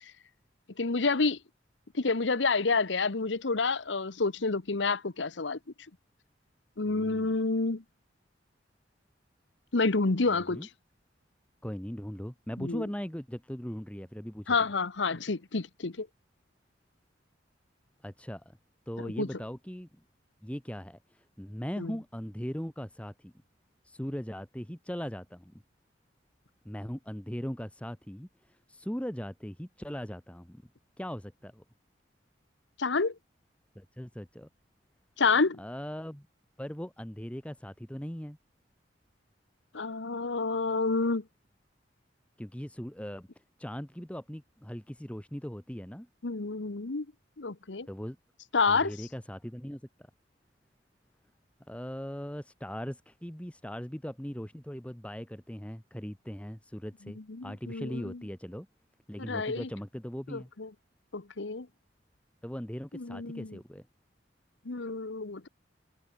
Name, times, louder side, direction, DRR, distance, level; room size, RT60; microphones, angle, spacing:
voice 1, 0.8-1.4 2.0-5.6 6.8-7.8 9.7-10.7 12.6-12.8 14.5-16.1 19.0-19.3 21.8-21.9 32.8-33.1 35.2-35.6 39.7-41.2 46.2-47.0 47.4-47.9 48.5-48.9 57.3-58.2 59.3-59.7 60.3-60.7 61.1-61.7 62.9-63.5 64.7-65.5, left 4 dB, 75° left, 1.1 m, -29 dB
voice 2, 6.8-7.4 10.3-10.7 11.6-14.7 18.0-18.4 18.9-19.9 20.4-23.3 23.8-25.5 26.6-30.6 31.0-31.6 33.7-34.5 35.6-36.3 36.6-38.4 42.4-43.3 43.6-46.1 47.9-48.2 48.7-49.8 51.7-58.7 59.1-60.5 62.4-63.8, equal, 5° left, 1.4 m, -39 dB
head